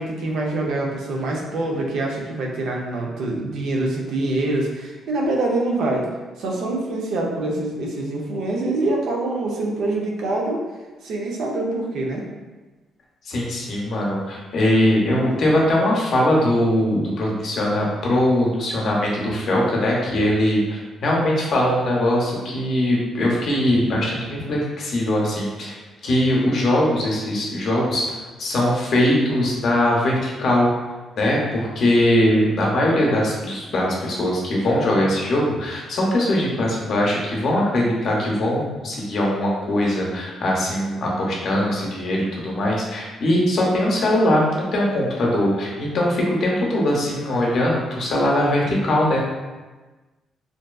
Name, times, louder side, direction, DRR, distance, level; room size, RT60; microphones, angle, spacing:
voice 1, 0.0-6.1 6.4-10.6 11.0-12.2, right 2 dB, 75° right, -1 dB, 0.4 m, -25 dB
voice 2, 13.3-30.7 31.2-49.2, left 1 dB, 60° left, -3 dB, 0.6 m, -21 dB
2.6 x 2.2 x 2.2 m, 1.2 s
cardioid pair, 90°, 0 cm